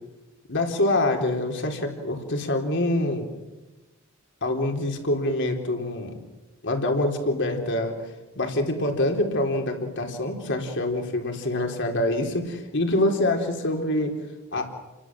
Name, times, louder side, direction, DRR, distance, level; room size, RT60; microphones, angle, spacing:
voice 1, 0.5-3.3 4.4-6.2 6.6-8.0 8.3-14.2 14.5-14.7, left 1 dB, 60° left, 3 dB, 4.1 m, -25 dB
29.5 x 23.0 x 7.7 m, 1.1 s
head